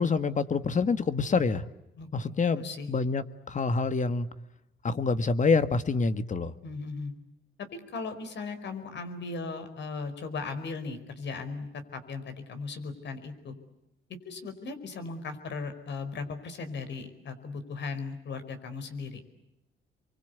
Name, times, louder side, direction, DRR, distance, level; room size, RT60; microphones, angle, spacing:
voice 1, 0.0-1.6 2.1-4.3 4.8-6.5, left 4 dB, 40° left, 12 dB, 1.7 m, -26 dB
voice 2, 2.0-2.9 6.6-7.1 7.7-13.5 14.2-19.2, left 4 dB, 65° left, 9 dB, 4.9 m, -37 dB
29.0 x 24.0 x 8.3 m, 0.90 s
cardioid pair, 90°, 20 cm